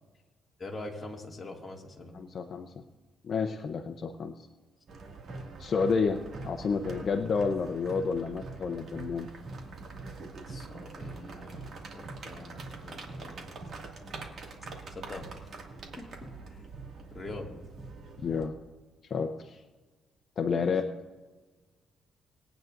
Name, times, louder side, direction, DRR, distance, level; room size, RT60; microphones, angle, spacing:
voice 1, 0.6-2.1 10.5-13.5 14.9-15.6 16.0-16.7 17.1-17.5 20.6-20.7, left 2 dB, 20° left, -1 dB, 2.3 m, -44 dB
voice 2, 2.1-2.7 3.2-4.5 5.6-9.3 18.2-18.5 19.1-19.6 20.4-20.9, left 5 dB, 50° left, 5 dB, 0.7 m, -30 dB
sound 1, 4.9-18.5, right 3 dB, 55° right, 2.2 m, -43 dB
21.5 x 9.2 x 2.6 m, 1.3 s
cardioid pair, 90°, 0 cm